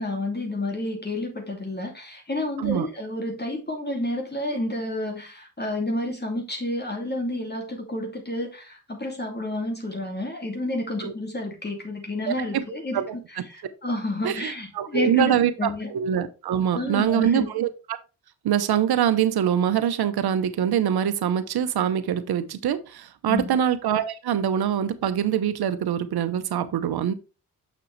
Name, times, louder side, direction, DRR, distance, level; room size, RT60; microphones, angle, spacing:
voice 1, 0.0-13.0 13.5-15.9 16.7-17.5 23.3-23.6, left 1 dB, 25° left, 2.6 m, -30 dB
voice 2, 12.3-12.6 12.9-13.2 14.2-18.0 18.4-27.1, right 9 dB, 70° right, 0.9 m, -24 dB
6.6 x 6.2 x 3.2 m
supercardioid pair, 50°, 39 cm